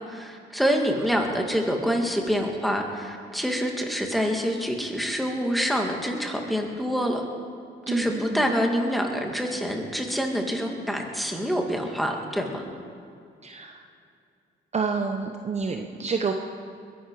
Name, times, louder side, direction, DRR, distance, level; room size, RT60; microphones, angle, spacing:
voice 1, 0.1-7.2 7.9-12.6, equal, ahead, 1 dB, 2.2 m, -26 dB
voice 2, 7.9-8.5 13.4-13.8 14.7-16.3, right 5 dB, 35° right, 4 dB, 0.9 m, -29 dB
21.5 x 11.0 x 4.8 m, 2.4 s
cardioid pair, 90°, 20 cm